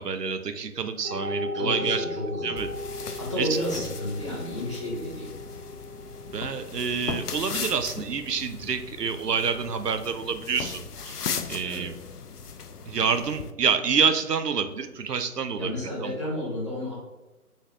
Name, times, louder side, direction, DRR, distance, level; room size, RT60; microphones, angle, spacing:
voice 1, 0.0-2.0 2.4-2.7 3.1-3.5 6.3-11.9 12.9-15.7 16.0-16.1, right 6 dB, 85° right, 9 dB, 0.6 m, -28 dB
sound 1, 1.0-15.8, left 1 dB, 10° right, 1.0 m, -40 dB
voice 2, 1.5-2.6 3.2-5.3 11.6-11.9 15.6-16.9, left 1 dB, 20° left, -7 dB, 0.9 m, -31 dB
sound 2, 2.6-13.5, left 6 dB, 75° left, 0.6 m, -38 dB
4.3 x 3.4 x 3.3 m, 1.1 s
figure-of-eight pair, 155°, 47 cm